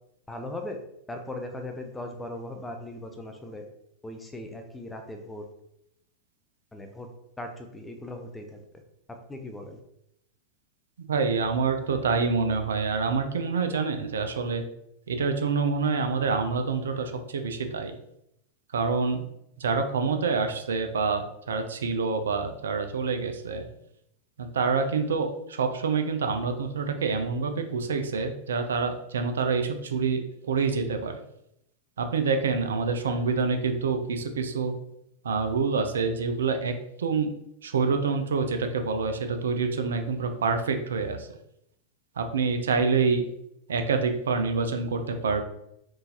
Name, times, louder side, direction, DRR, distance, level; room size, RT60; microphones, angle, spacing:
voice 1, 0.3-0.8 1.1-3.6 4.0-5.5 6.7-7.1 7.4-8.6 9.3-9.8, left 1 dB, 10° left, 4 dB, 0.5 m, -38 dB
voice 2, 11.1-14.6 15.1-18.0 18.7-19.2 19.6-23.6 24.4-31.2 32.0-34.7 35.2-37.3 37.6-41.3 42.2-43.2 43.7-45.4, right 4 dB, 65° right, 6 dB, 0.4 m, -27 dB
3.6 x 2.5 x 2.8 m, 0.78 s
figure-of-eight pair, 90°, 0 cm